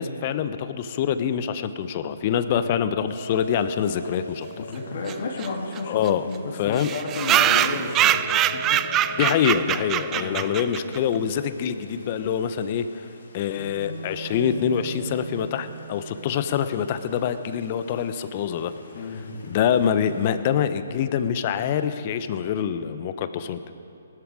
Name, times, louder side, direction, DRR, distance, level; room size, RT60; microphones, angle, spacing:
voice 1, 0.0-4.6 5.9-6.2 6.6-6.9 9.2-13.1 13.3-18.7 19.4-23.7, left 8 dB, 40° left, 11 dB, 0.8 m, -25 dB
sound 1, 3.1-20.3, equal, 70° left, 3.4 m, -41 dB
voice 2, 4.6-8.8 9.2-9.3 10.1-10.5 18.9-19.6, left 3 dB, 55° left, -1 dB, 2.4 m, -32 dB
sound 2, 5.1-5.2 5.4-5.5 5.8-5.9 6.1-6.2 6.8-11.0, right 12 dB, 20° right, 0.3 m, -23 dB
20.0 x 12.5 x 4.9 m, 2.8 s
figure-of-eight pair, 140°, 0 cm